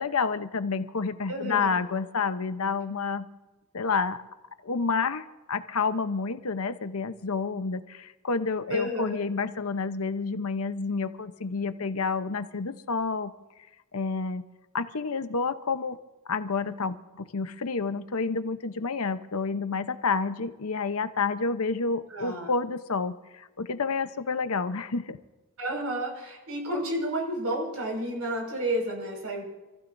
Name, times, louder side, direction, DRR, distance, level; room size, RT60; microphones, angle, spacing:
voice 1, 0.0-3.3 3.7-4.2 4.6-13.3 13.9-14.4 14.7-16.0 16.3-25.2, left 4 dB, 70° left, 11 dB, 0.8 m, -29 dB
voice 2, 1.3-1.7 8.7-9.2 22.1-22.5 25.6-29.4, right 1 dB, 80° right, 1 dB, 5.6 m, -31 dB
28.0 x 15.5 x 2.6 m, 1.1 s
head